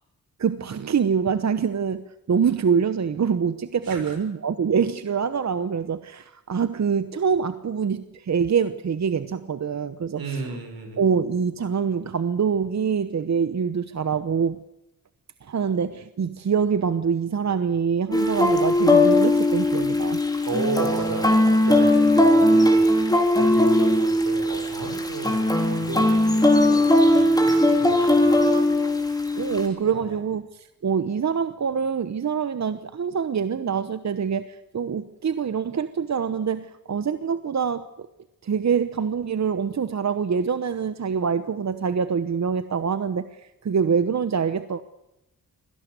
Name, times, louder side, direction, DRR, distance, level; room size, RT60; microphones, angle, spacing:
voice 1, 0.4-10.5 11.0-14.6 15.4-20.2 29.4-38.1 38.4-44.8, right 6 dB, 55° right, 1.0 m, -25 dB
voice 2, 10.2-11.0 20.5-23.0 23.3-28.3 29.8-30.0, right 3 dB, 85° right, 6.0 m, -33 dB
sound 1, 18.1-29.7, left 1 dB, 10° left, 3.8 m, -19 dB
24.5 x 17.5 x 8.1 m
cardioid pair, 85°, 34 cm